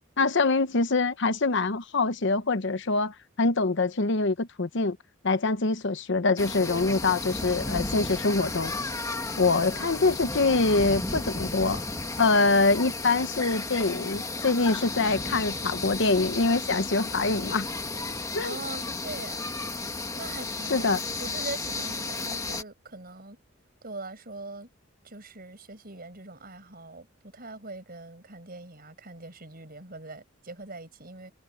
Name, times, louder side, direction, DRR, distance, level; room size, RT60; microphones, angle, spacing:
voice 1, 0.2-5.0 5.2-8.7 9.4-11.8 12.2-17.7 18.3-18.5 20.7-21.0, left 3 dB, 60° left, 0.9 m, -24 dB
sound 1, 6.4-22.6, left 3 dB, 15° left, 1.4 m, -33 dB
voice 2, 18.4-19.5 20.1-23.4 23.8-24.7 25.0-27.1 27.3-31.3, right 2 dB, 45° right, 6.3 m, -42 dB
head